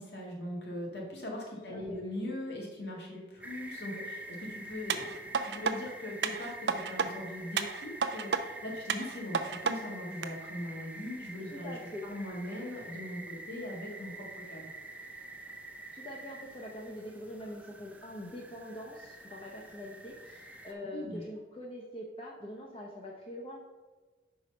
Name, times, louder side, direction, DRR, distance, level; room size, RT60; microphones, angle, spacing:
voice 1, 0.0-5.1 5.4-14.7 20.9-21.2, left 1 dB, 70° left, -2 dB, 1.7 m, -40 dB
sound 1, 3.4-20.7, right 1 dB, 10° right, 0.4 m, -47 dB
sound 2, 4.9-5.7 6.2-7.1 7.6-8.4 8.9-9.7 10.2-10.3, right 5 dB, 70° right, 0.5 m, -31 dB
voice 2, 11.5-12.1 15.9-23.6, left 1 dB, 30° left, -2 dB, 0.7 m, -44 dB
5.5 x 4.7 x 5.2 m, 1.3 s
head